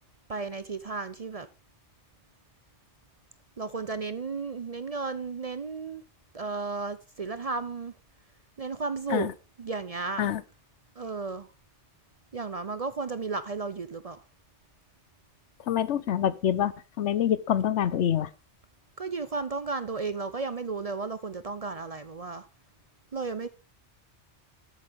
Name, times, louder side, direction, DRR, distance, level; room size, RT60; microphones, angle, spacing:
voice 1, 0.3-1.5 3.6-6.0 6.3-7.9 8.6-9.3 9.6-10.3 11.0-11.5 12.3-14.2 19.0-22.5 23.1-23.5, right 4 dB, 40° right, 0.6 m, -34 dB
voice 2, 15.7-18.3, left 10 dB, 85° left, 1.0 m, -26 dB
13.0 x 8.3 x 3.5 m
omnidirectional pair, 1.2 m